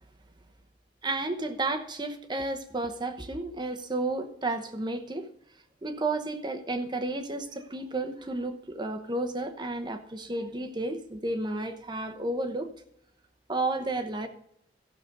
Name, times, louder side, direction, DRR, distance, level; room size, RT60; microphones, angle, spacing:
voice 1, 1.0-5.3 5.8-12.7 13.5-14.3, right 2 dB, 25° right, 7 dB, 0.9 m, -32 dB
14.0 x 6.7 x 5.2 m, 0.74 s
head